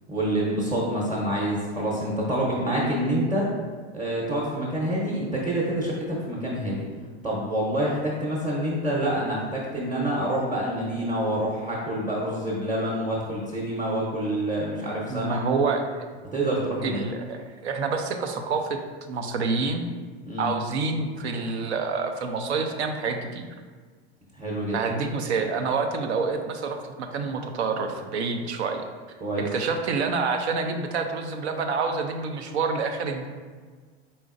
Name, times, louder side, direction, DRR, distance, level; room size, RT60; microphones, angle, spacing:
voice 1, 0.1-3.5 3.9-6.9 7.2-15.6 16.3-17.0 20.2-20.5 24.4-24.8 29.2-29.5, right 1 dB, 15° right, -4 dB, 0.8 m, -27 dB
voice 2, 15.1-16.1 16.8-19.8 20.4-23.5 24.7-28.8 29.5-33.3, right 4 dB, 85° right, 5 dB, 0.6 m, -27 dB
4.2 x 3.8 x 2.5 m, 1.5 s
hypercardioid pair, 120°, 32 cm